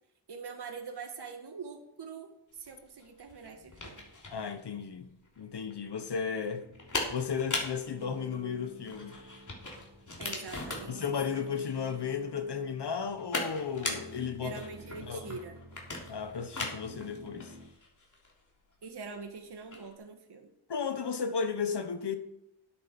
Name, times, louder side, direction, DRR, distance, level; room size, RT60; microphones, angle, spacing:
voice 1, 0.3-4.1 10.2-11.0 14.4-15.5 18.8-20.5, right 5 dB, 55° right, 1.5 m, -44 dB
sound 1, 2.6-19.9, left 2 dB, 35° left, 3.4 m, -41 dB
voice 2, 4.3-6.6 7.1-9.1 10.9-14.6 15.0-15.4 16.1-17.5 20.7-22.2, left 6 dB, 55° left, 1.2 m, -34 dB
sound 2, 6.6-17.6, equal, 85° right, 2.5 m, -52 dB
10.0 x 8.9 x 5.3 m
cardioid pair, 85°, 49 cm